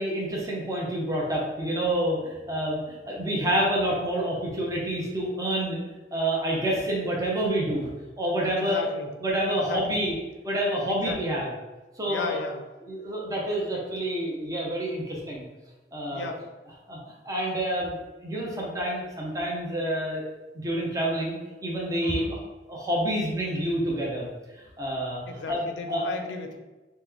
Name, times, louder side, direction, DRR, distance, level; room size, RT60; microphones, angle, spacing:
voice 1, 0.0-5.8 6.1-7.9 8.2-8.8 9.2-10.1 10.4-11.5 12.0-12.4 12.8-15.5 15.9-16.3 16.9-17.0 17.3-20.2 20.5-22.4 22.7-24.3 24.5-26.0, right 1 dB, 20° right, -3 dB, 0.6 m, -28 dB
voice 2, 8.6-9.1 9.5-10.1 10.9-11.4 12.1-12.6 16.1-16.4 22.0-22.3 25.3-26.6, left 4 dB, 85° left, 4 dB, 0.4 m, -35 dB
3.0 x 2.1 x 3.4 m, 1.1 s
head